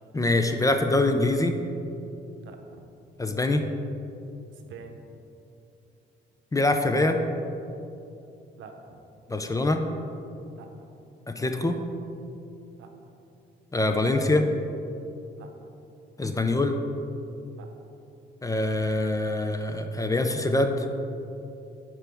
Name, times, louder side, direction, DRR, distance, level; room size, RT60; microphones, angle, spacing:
voice 1, 0.1-1.6 3.2-3.7 6.5-7.2 9.3-9.8 11.3-11.8 13.7-14.5 16.2-16.8 18.4-20.9, left 2 dB, 15° left, 6 dB, 0.5 m, -24 dB
voice 2, 2.4-2.9 4.5-5.0 8.6-9.0 10.5-10.7 12.8-12.9 15.3-15.5 17.5-17.7, right 6 dB, 75° right, 5 dB, 0.7 m, -46 dB
9.9 x 4.6 x 3.5 m, 2.8 s
cardioid pair, 90°, 20 cm